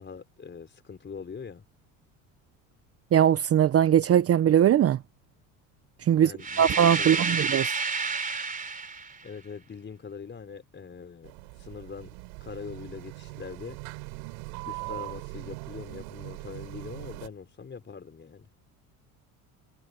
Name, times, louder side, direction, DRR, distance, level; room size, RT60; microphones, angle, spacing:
voice 1, 0.0-1.6 6.1-6.7 7.0-7.4 9.2-13.8 14.7-18.5, left 6 dB, 30° left, 4.7 m, -42 dB
voice 2, 3.1-5.0 6.0-6.3 6.6-7.7, right 10 dB, 35° right, 0.9 m, -20 dB
sound 1, 6.4-9.2, right 4 dB, 20° right, 3.8 m, -30 dB
sound 2, 11.2-17.3, right 32 dB, 80° right, 5.2 m, -41 dB
supercardioid pair, 95°, 39 cm